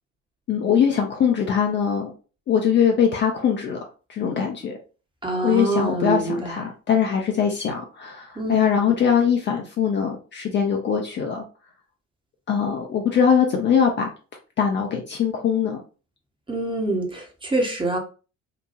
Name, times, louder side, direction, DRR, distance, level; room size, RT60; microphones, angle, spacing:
voice 1, 0.5-2.1 2.5-3.8 4.1-4.8 5.4-11.4 12.5-14.1 14.6-15.8, left 7 dB, 30° left, 2 dB, 0.5 m, -22 dB
voice 2, 5.2-6.5 8.4-8.5 16.5-18.0, right 2 dB, 15° right, 1 dB, 0.8 m, -25 dB
2.9 x 2.2 x 2.5 m, 0.35 s
figure-of-eight pair, 55°, 38 cm